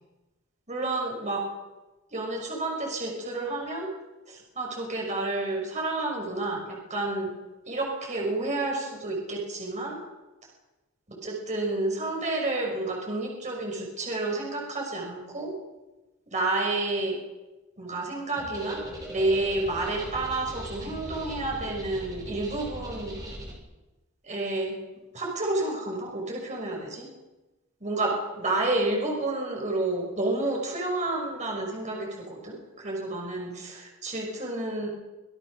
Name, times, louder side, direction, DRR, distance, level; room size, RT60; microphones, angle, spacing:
voice 1, 0.7-1.4 2.1-3.9 4.3-7.3 7.7-10.0 11.2-15.5 16.3-17.2 17.8-23.2 24.2-24.8 25.1-27.1 27.8-34.9, right 2 dB, 35° right, -1 dB, 6.3 m, -30 dB
sound 1, 18.4-23.6, equal, 20° right, 7.0 m, -40 dB
25.5 x 18.0 x 6.6 m, 1.1 s
head